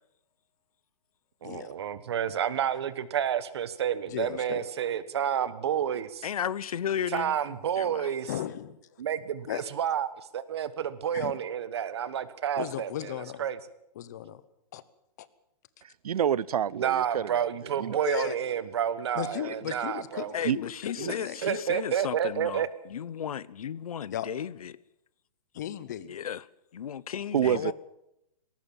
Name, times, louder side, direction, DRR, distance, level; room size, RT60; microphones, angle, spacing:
voice 1, 1.4-6.3 7.1-8.3 9.0-10.1 10.3-13.1 13.4-13.6 16.7-20.3 21.0-21.1 21.4-22.7, right 9 dB, 45° right, 1.4 m, -30 dB
voice 2, 4.1-4.7 8.3-8.8 9.5-9.6 11.1-11.3 12.6-13.4 14.0-14.4 14.7-14.8 15.2-15.3 18.0-18.4 19.1-21.8 24.1-24.3 25.5-26.1 27.5-27.7, left 11 dB, 30° left, 0.9 m, -36 dB
voice 3, 6.2-7.4 7.8-8.1 20.3-24.7 26.1-26.4 26.7-27.6, left 8 dB, 65° left, 0.9 m, -34 dB
voice 4, 15.8-17.5 17.8-18.3 20.4-20.6 27.3-27.7, right 9 dB, 70° right, 0.7 m, -28 dB
19.5 x 18.5 x 7.2 m
hypercardioid pair, 180°, 20 cm